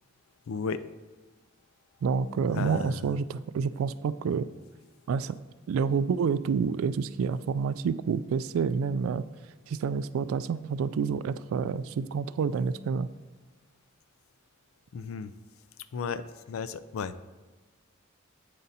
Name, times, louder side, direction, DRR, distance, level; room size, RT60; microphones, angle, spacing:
voice 1, 0.5-0.8 2.5-3.1 14.9-15.3 15.9-17.1, left 5 dB, 85° left, 14 dB, 0.4 m, -34 dB
voice 2, 2.0-4.5 5.1-5.4 5.7-9.2 9.7-13.1, right 6 dB, 80° right, 16 dB, 0.3 m, -28 dB
8.3 x 3.9 x 4.1 m, 1.3 s
head